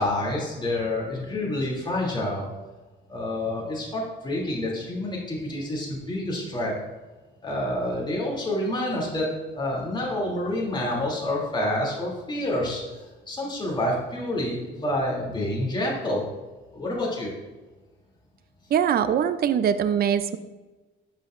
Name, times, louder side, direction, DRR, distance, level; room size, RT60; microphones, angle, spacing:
voice 1, 0.0-2.5 3.1-6.8 7.4-13.0 13.3-16.2 16.7-17.3, left 1 dB, 25° left, -3 dB, 2.7 m, -28 dB
voice 2, 18.7-20.4, right 8 dB, 50° right, 12 dB, 0.5 m, -22 dB
10.5 x 7.3 x 2.5 m, 1.2 s
cardioid pair, 90°, 20 cm